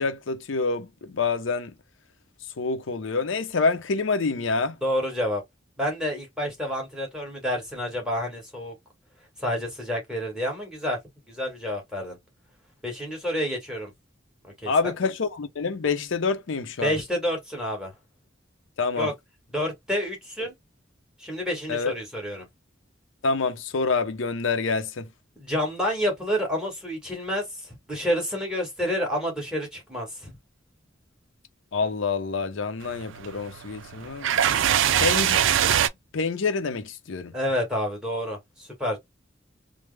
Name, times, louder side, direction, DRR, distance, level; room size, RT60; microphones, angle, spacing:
voice 1, 0.0-1.7 2.6-4.8 14.7-17.0 18.8-19.1 21.7-21.9 23.2-25.1 31.7-34.4 35.0-35.4 35.7-35.8 36.1-37.3, left 4 dB, 90° left, 0.6 m, -27 dB
voice 2, 4.8-5.4 5.8-8.7 9.4-11.0 11.3-12.2 12.8-13.9 14.6-14.9 16.8-17.9 19.0-19.1 19.5-20.5 21.2-22.5 25.4-30.3 37.3-39.0, equal, 5° right, 1.5 m, -29 dB
sound 1, 32.8-35.9, right 10 dB, 85° right, 0.4 m, -23 dB
3.3 x 2.0 x 3.3 m
head